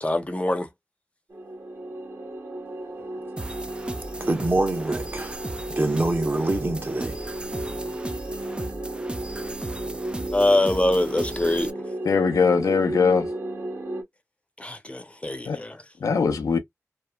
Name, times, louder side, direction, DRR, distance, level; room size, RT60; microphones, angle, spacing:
voice 1, 0.0-0.7 10.3-11.7 14.6-15.8, left 1 dB, 20° left, 0.7 m, -24 dB
sound 1, 1.3-14.0, right 1 dB, 65° right, 1.2 m, -34 dB
sound 2, 3.4-11.7, right 1 dB, 20° right, 0.4 m, -36 dB
voice 2, 4.2-5.5 5.8-7.2, right 2 dB, 35° right, 1.0 m, -25 dB
voice 3, 12.0-13.3 15.5-15.6 16.0-16.6, left 5 dB, 85° left, 0.5 m, -21 dB
3.0 x 2.1 x 2.3 m
cardioid pair, 55°, 6 cm